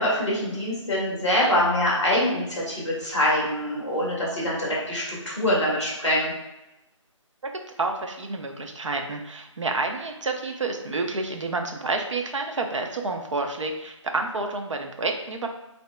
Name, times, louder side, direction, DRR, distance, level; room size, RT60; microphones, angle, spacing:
voice 1, 0.0-6.3, left 1 dB, 5° right, -16 dB, 1.0 m, -24 dB
voice 2, 7.8-15.5, right 3 dB, 65° right, 3 dB, 0.7 m, -29 dB
7.2 x 2.8 x 2.2 m, 0.95 s
figure-of-eight pair, 180°, 17 cm